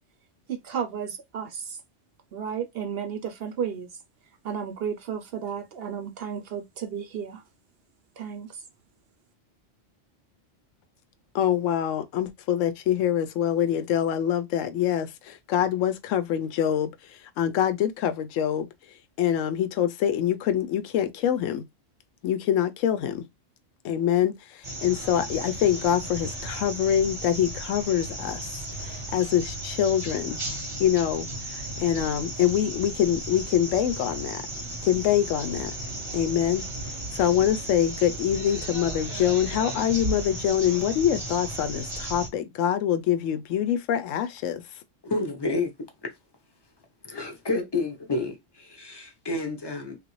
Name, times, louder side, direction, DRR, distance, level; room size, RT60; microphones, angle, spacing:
voice 1, 0.5-1.8 2.3-3.9 4.4-7.4 8.2-8.5, right 7 dB, 60° right, 0.7 m, -33 dB
voice 2, 11.3-18.7 19.2-21.7 22.2-23.2 23.8-28.5 28.8-30.4 30.8-31.3 31.5-34.4 34.8-35.7 36.1-36.7 37.1-44.6, left 10 dB, 85° left, 0.9 m, -25 dB
sound 1, 24.6-42.3, right 1 dB, 30° right, 0.8 m, -35 dB
voice 3, 45.0-45.7 47.0-50.0, left 3 dB, 25° left, 0.6 m, -29 dB
3.4 x 2.5 x 3.0 m
omnidirectional pair, 1.3 m